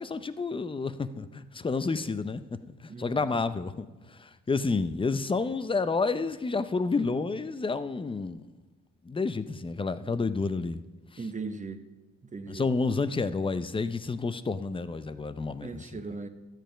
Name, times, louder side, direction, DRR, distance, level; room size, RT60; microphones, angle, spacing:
voice 1, 0.0-2.6 3.0-8.4 9.0-10.8 12.5-16.0, left 4 dB, 15° left, 13 dB, 0.6 m, -30 dB
voice 2, 2.9-3.2 11.2-11.8 12.3-12.7 15.6-16.3, right 4 dB, 25° right, 8 dB, 1.0 m, -38 dB
13.0 x 9.2 x 5.1 m, 1.2 s
cardioid pair, 90°, 30 cm